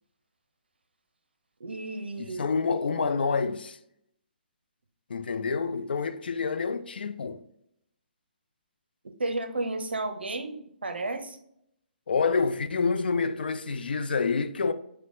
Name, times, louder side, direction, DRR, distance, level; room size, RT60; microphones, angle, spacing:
voice 1, 1.6-2.4 9.0-11.4, right 2 dB, 80° right, 0.6 m, -33 dB
voice 2, 2.2-3.8 5.1-7.4 12.1-14.7, left 5 dB, 70° left, 0.4 m, -27 dB
5.6 x 2.1 x 3.8 m
figure-of-eight pair, 140°, 6 cm